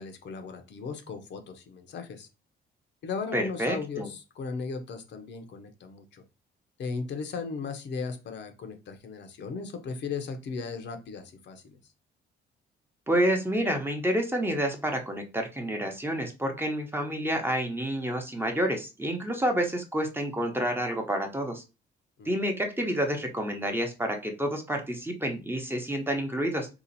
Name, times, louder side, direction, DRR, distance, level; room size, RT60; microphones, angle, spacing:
voice 1, 0.0-2.3 3.0-6.2 6.8-11.8 22.2-22.3, left 5 dB, 65° left, 6 dB, 0.8 m, -37 dB
voice 2, 3.3-4.1 13.1-21.6 22.2-26.7, equal, 10° right, 3 dB, 0.8 m, -29 dB
2.8 x 2.5 x 4.0 m, 0.29 s
cardioid pair, 90°, 20 cm